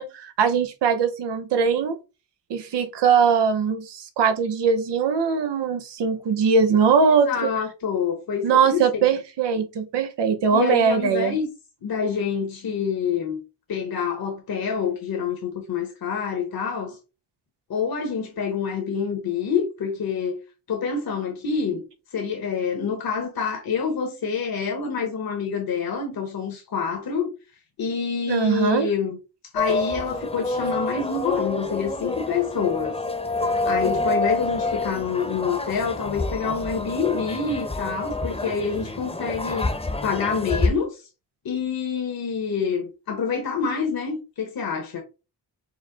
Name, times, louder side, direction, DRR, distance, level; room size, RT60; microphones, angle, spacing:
voice 1, 0.0-2.0 2.5-7.3 8.4-11.4 28.3-28.9, right 6 dB, 85° right, 0.8 m, -21 dB
voice 2, 7.2-9.1 10.5-11.5 11.8-13.4 13.7-17.0 17.7-20.4 20.7-21.8 22.1-27.3 27.8-29.2 29.5-33.0 33.6-39.7 40.0-41.1 41.4-45.0, left 6 dB, 60° left, 1.1 m, -27 dB
sound 1, 29.6-40.7, left 2 dB, 15° left, 0.8 m, -28 dB
4.8 x 2.1 x 3.8 m
cardioid pair, 60°, 41 cm